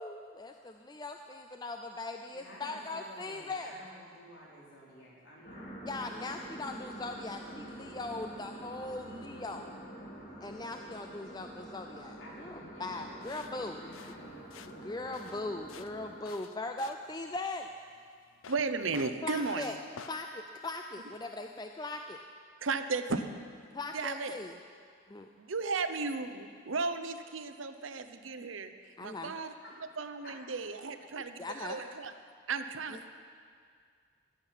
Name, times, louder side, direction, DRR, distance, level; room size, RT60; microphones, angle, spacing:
voice 1, 0.0-3.7 5.9-9.7 10.4-13.8 14.7-17.7 19.2-19.8 20.1-22.2 23.7-24.5 25.1-25.3 29.0-29.3 31.1-31.8 32.9-33.1, left 2 dB, 20° left, 5 dB, 0.4 m, -40 dB
voice 2, 2.3-6.1 12.2-14.4 28.8-28.9 29.6-29.8 30.2-30.4, equal, 65° left, -5 dB, 3.9 m, -52 dB
sound 1, 5.4-16.1, right 1 dB, 35° left, 3.3 m, -47 dB
sound 2, 13.2-20.2, left 6 dB, 90° left, 0.6 m, -52 dB
voice 3, 18.5-19.7 22.6-23.3 23.9-24.3 25.4-28.7 29.0-29.5 30.0-32.1 32.5-33.1, right 4 dB, 75° right, 9 dB, 0.8 m, -35 dB
14.0 x 7.6 x 10.0 m, 2.1 s
head